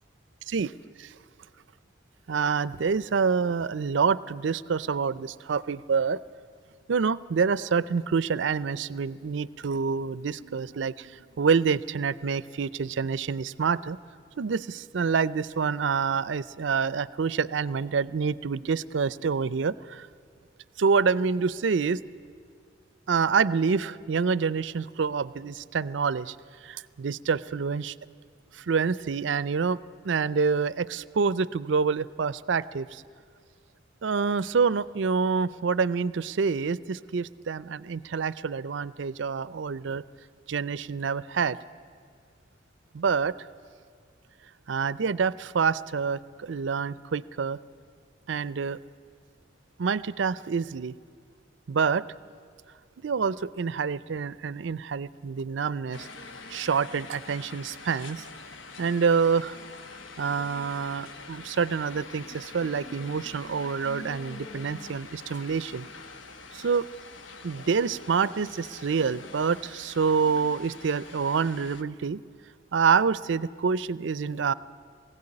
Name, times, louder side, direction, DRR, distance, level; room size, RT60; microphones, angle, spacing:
voice 1, 2.3-6.2 6.9-14.0 14.4-20.1 20.8-22.0 23.1-26.4 26.6-27.9 28.5-29.8 30.0-33.0 34.0-40.0 40.5-41.6 42.9-43.3 44.7-47.6 48.3-48.8 49.8-51.0 51.7-52.1 53.0-56.1 56.5-58.2 58.8-59.6 60.2-65.9 66.5-66.9 67.4-72.2 72.7-74.5, right 5 dB, 70° right, 18 dB, 0.5 m, -27 dB
sound 1, 55.9-71.8, left 3 dB, 80° left, 1.2 m, -45 dB
20.5 x 16.0 x 9.8 m, 2.1 s
head